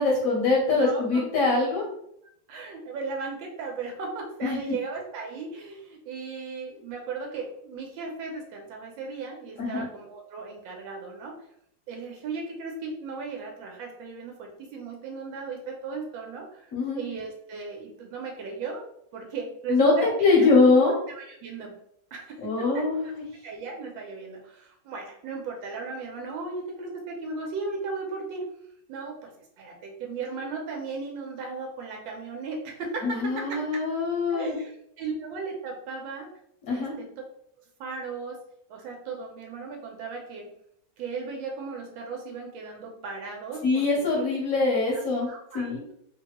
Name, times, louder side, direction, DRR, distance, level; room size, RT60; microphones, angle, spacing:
voice 1, 0.0-1.8 4.4-4.6 9.6-9.9 16.7-17.0 19.7-19.9 20.2-20.9 22.4-23.2 33.0-34.6 36.7-36.9 43.6-45.3 45.5-45.8, left 3 dB, 60° left, -4 dB, 1.0 m, -23 dB
voice 2, 0.7-1.2 2.5-11.3 11.9-18.9 19.1-20.1 20.4-20.5 20.8-21.8 22.1-23.1 23.4-28.5 28.9-33.8 34.3-36.3 36.7-37.1 37.8-38.4 38.7-40.5 41.0-44.2 44.9-45.7, right 4 dB, 85° right, 1 dB, 1.3 m, -36 dB
3.2 x 2.2 x 2.9 m, 0.71 s
omnidirectional pair, 2.1 m